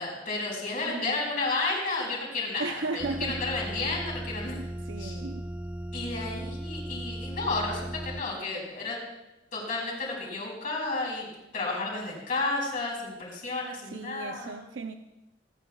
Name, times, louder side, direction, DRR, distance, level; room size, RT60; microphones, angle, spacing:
voice 1, 0.0-4.6 5.0-5.2 5.9-9.0 9.5-11.3 11.5-14.6, left 3 dB, 50° left, -2 dB, 4.8 m, -32 dB
voice 2, 0.9-1.3 2.6-3.4 4.5-5.5 13.9-14.9, right 3 dB, 80° right, 6 dB, 0.6 m, -36 dB
sound 1, 3.0-8.2, right 1 dB, 5° right, 0.3 m, -37 dB
28.0 x 9.7 x 2.3 m, 0.94 s
head